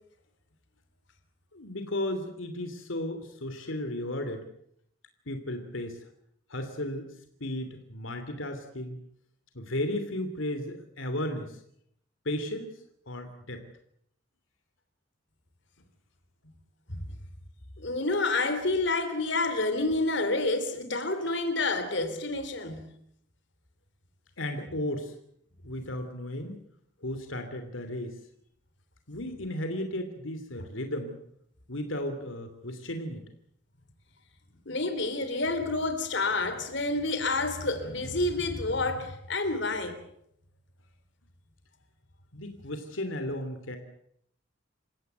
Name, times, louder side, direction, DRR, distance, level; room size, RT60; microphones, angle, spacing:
voice 1, 1.5-4.5 5.3-6.1 6.5-7.1 7.4-9.0 9.5-11.6 12.2-12.7 13.1-13.6 24.4-25.1 25.6-26.6 27.0-28.2 29.1-31.2 31.7-33.3 42.3-43.8, left 1 dB, 85° left, 2.8 m, -34 dB
voice 2, 17.8-22.9 34.7-40.0, left 2 dB, 60° left, 3.4 m, -29 dB
28.5 x 16.5 x 8.1 m
head